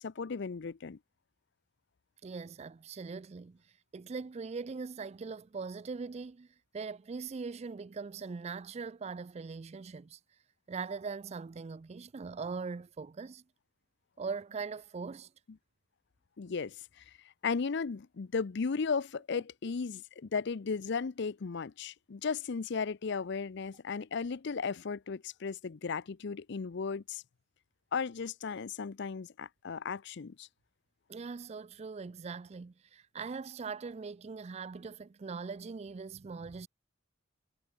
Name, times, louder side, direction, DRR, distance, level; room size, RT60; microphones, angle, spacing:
voice 1, 0.0-1.0 16.4-16.8 17.4-27.2 27.9-30.5, left 5 dB, 60° left, 0.5 m, -35 dB
voice 2, 2.2-3.6 3.9-6.5 6.7-10.2 10.7-13.4 14.2-15.3 19.3-19.4 31.1-36.7, right 4 dB, 30° right, 0.4 m, -41 dB
head